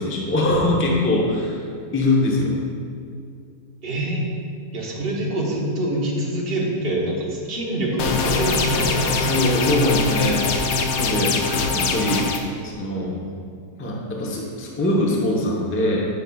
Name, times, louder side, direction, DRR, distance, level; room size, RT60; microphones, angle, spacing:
voice 1, 0.0-1.6 1.9-2.6 9.2-10.5 10.7-12.3 12.6-13.2 13.8-16.1, left 1 dB, 15° left, -3 dB, 0.5 m, -22 dB
voice 2, 3.8-4.2 4.7-9.3, right 1 dB, 40° right, -3 dB, 1.2 m, -25 dB
sound 1, 8.0-12.4, left 4 dB, 70° left, 1.0 m, -22 dB
10.5 x 5.4 x 2.3 m, 2.3 s
omnidirectional pair, 1.7 m